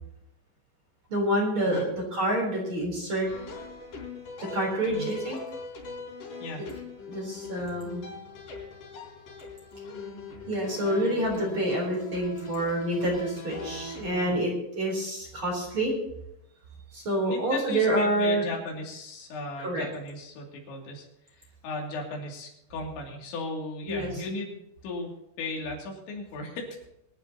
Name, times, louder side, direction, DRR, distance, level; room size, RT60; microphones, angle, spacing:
voice 1, 1.1-3.3 4.5-5.4 7.1-8.0 10.5-15.9 16.9-18.5 19.6-19.8 23.9-24.1, right 1 dB, 30° right, -1 dB, 4.4 m, -27 dB
sound 1, 3.3-14.4, left 1 dB, 50° left, 5.2 m, -41 dB
voice 2, 17.2-21.1 21.6-24.5 24.8-25.1 25.4-26.7, left 2 dB, 85° left, -1 dB, 5.1 m, -36 dB
23.5 x 11.5 x 2.9 m, 0.82 s
omnidirectional pair, 5.1 m